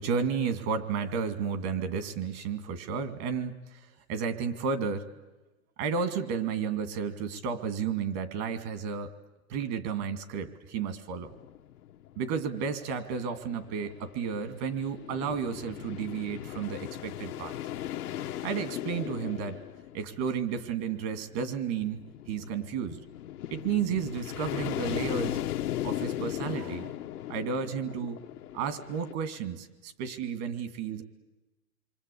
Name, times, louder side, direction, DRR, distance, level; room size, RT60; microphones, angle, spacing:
voice 1, 0.0-5.1 5.8-9.1 9.5-11.3 12.2-17.5 18.4-19.6 19.9-23.0 23.5-25.4 25.8-26.9 27.3-28.2 28.5-31.0, right 6 dB, 45° right, 11 dB, 2.7 m, -32 dB
sound 1, 11.3-29.1, left 12 dB, 85° left, 1.3 m, -38 dB
27.5 x 24.0 x 8.6 m, 1.1 s
supercardioid pair, 135°, 44 cm